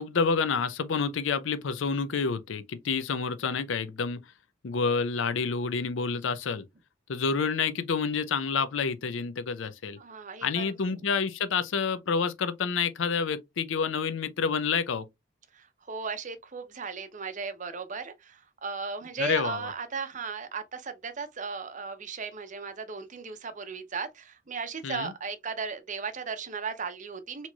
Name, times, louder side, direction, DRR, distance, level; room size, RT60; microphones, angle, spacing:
voice 1, 0.0-4.2 4.6-6.6 7.1-10.0 10.4-15.1 19.2-19.7 24.8-25.1, left 5 dB, 70° left, 0.5 m, -28 dB
voice 2, 10.0-10.7 15.5-27.5, right 5 dB, 40° right, 0.6 m, -36 dB
4.3 x 3.0 x 2.2 m
head